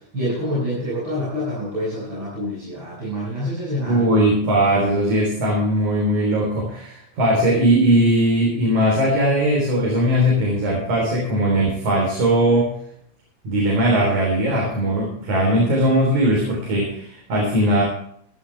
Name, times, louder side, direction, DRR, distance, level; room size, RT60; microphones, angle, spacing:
voice 1, 0.1-4.1, equal, 40° right, -8 dB, 7.3 m, -27 dB
voice 2, 3.9-12.7 13.4-17.8, right 1 dB, 75° right, -2 dB, 5.0 m, -19 dB
16.0 x 13.0 x 3.4 m, 0.67 s
omnidirectional pair, 3.4 m